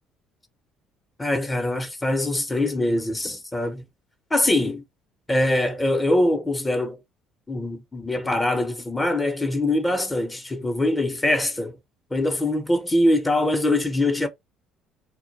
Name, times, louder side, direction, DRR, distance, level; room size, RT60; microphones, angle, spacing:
voice 1, 1.2-3.8 4.3-4.8 5.3-7.0 7.5-11.8 12.1-14.3, left 1 dB, 15° left, 0.6 m, -23 dB
2.2 x 2.1 x 2.7 m
supercardioid pair, 80°, 0 cm